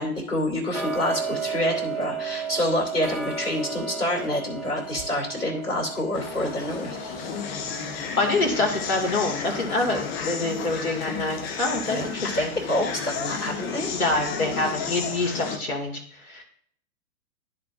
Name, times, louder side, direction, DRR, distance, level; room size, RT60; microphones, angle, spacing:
voice 1, 0.0-7.1 11.8-12.1 12.3-14.0, left 1 dB, 90° left, 0 dB, 2.8 m, -27 dB
Tick-tock, 0.7-11.6 12.0-12.1 12.6-12.7 13.2-13.3 13.8-13.9 14.4-14.5 15.0-15.1 15.6-15.7, right 5 dB, ahead, 1.0 m, -35 dB
sound 1, 6.1-15.6, left 6 dB, 40° left, 1.0 m, -33 dB
voice 2, 8.2-12.5 13.9-16.4, left 2 dB, 70° left, 2 dB, 2.3 m, -26 dB
13.0 x 4.5 x 2.5 m, 0.65 s
figure-of-eight pair, 110°, 45 cm